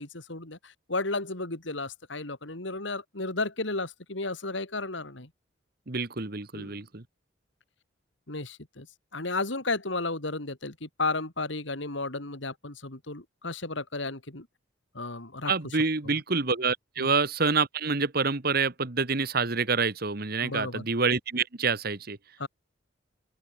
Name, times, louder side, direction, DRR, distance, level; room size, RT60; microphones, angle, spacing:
voice 1, 0.0-5.3 6.5-6.8 8.3-8.9 9.1-14.5 14.9-15.5 17.0-17.1 20.4-20.9 22.4-22.5, left 3 dB, 65° left, 2.8 m, -33 dB
voice 2, 5.9-7.0 15.5-22.2, right 4 dB, 50° right, 1.5 m, -27 dB
open air
head